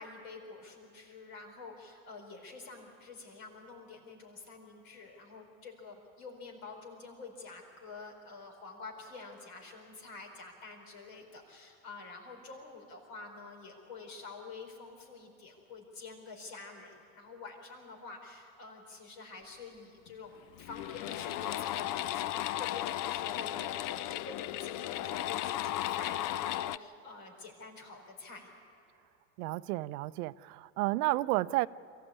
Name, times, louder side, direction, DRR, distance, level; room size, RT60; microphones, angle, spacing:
voice 1, 0.0-28.5, left 4 dB, 65° left, 4.8 m, -48 dB
sound 1, 20.1-20.2 20.5-26.8, left 14 dB, 45° left, 0.5 m, -35 dB
voice 2, 29.4-31.7, right 19 dB, 80° right, 0.6 m, -31 dB
23.5 x 15.5 x 8.5 m
hypercardioid pair, 95°, 44 cm